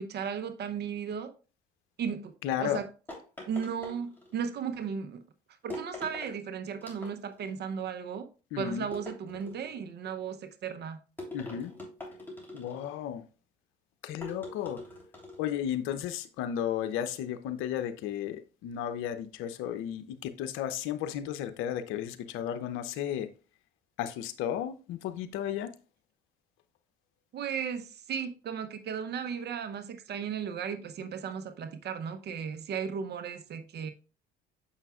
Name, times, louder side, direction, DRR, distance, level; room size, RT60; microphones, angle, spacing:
voice 1, 0.0-1.3 2.0-2.3 2.6-2.9 3.5-5.2 5.6-8.3 8.6-11.0 27.3-33.9, right 7 dB, 55° right, 0.7 m, -35 dB
voice 2, 2.4-2.8 8.5-8.9 11.3-11.7 12.5-13.2 14.0-14.8 15.4-23.3 24.0-25.7, left 10 dB, 75° left, 0.7 m, -34 dB
sound 1, 3.1-4.5 5.7-6.4 6.8-7.5 8.9-9.8 11.2-13.0 14.2-15.5, left 1 dB, 10° left, 3.2 m, -43 dB
7.0 x 5.6 x 2.4 m
supercardioid pair, 80°, 21 cm